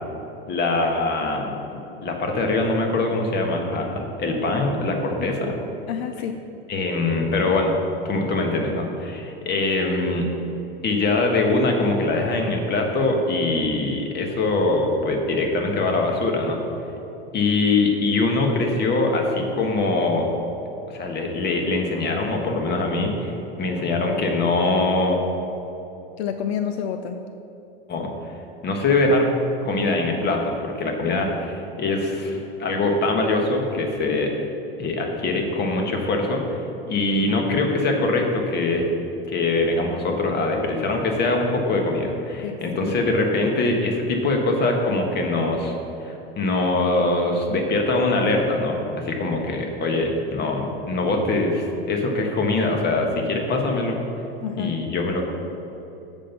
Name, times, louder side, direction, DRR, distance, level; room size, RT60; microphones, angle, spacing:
voice 1, 0.5-1.5 2.0-5.6 6.7-7.7 8.0-10.3 10.8-16.6 17.3-20.3 20.9-25.2 27.9-28.3 28.6-29.3 29.6-34.3 34.8-38.9 39.3-54.0 54.6-55.3, left 2 dB, 30° left, 2 dB, 1.3 m, -23 dB
voice 2, 5.9-6.4 26.2-27.2 42.4-42.6 42.9-43.0 54.4-54.8, left 8 dB, 75° left, 7 dB, 0.6 m, -28 dB
7.4 x 5.4 x 5.8 m, 2.9 s
supercardioid pair, 120°, 32 cm